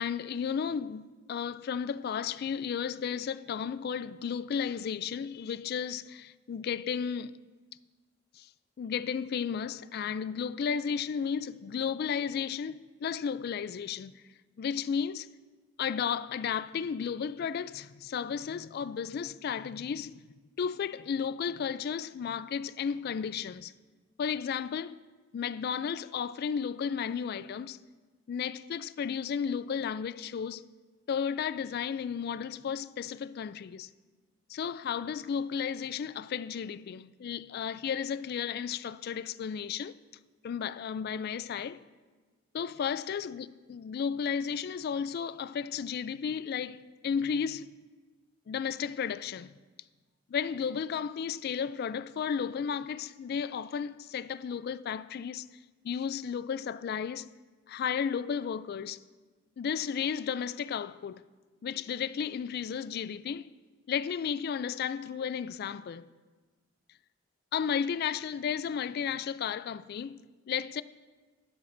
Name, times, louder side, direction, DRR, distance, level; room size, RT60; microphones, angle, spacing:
voice 1, 0.0-7.4 8.3-8.5 8.8-14.2 14.6-15.3 15.8-20.2 20.6-23.7 24.2-25.0 25.3-27.8 28.3-30.6 31.1-33.9 34.5-39.9 40.4-41.8 42.5-47.7 48.5-49.5 50.3-55.5 55.8-57.3 57.7-59.0 59.6-61.2 61.6-63.5 63.9-66.1 67.5-70.2 70.5-70.8, left 7 dB, 50° left, 0.3 m, -33 dB
12.5 x 12.0 x 2.6 m
head